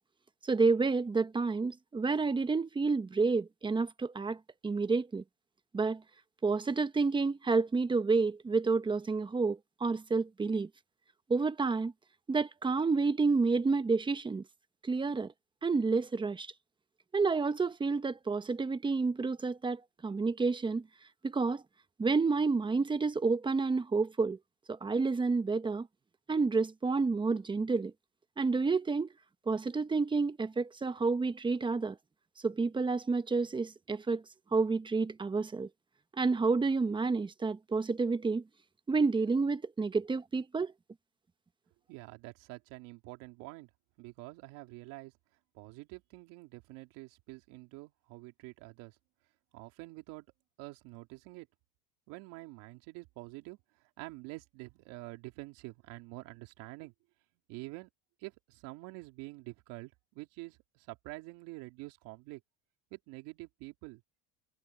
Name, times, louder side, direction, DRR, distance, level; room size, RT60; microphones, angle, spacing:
voice 1, 0.4-5.2 5.7-6.0 6.4-10.7 11.3-11.9 12.3-14.4 14.8-15.3 15.6-16.5 17.1-20.8 21.2-21.6 22.0-24.4 24.7-25.9 26.3-27.9 28.4-29.1 29.5-32.0 32.4-34.2 34.5-35.7 36.2-38.4 38.9-40.7, right 4 dB, 15° right, 1.0 m, -29 dB
voice 2, 41.9-43.7 44.0-45.1 45.5-49.0 49.5-50.3 50.6-51.5 52.1-56.9 57.5-57.9 58.2-62.4 62.9-64.0, right 23 dB, 70° right, 3.3 m, -47 dB
supercardioid pair, 120°, 34 cm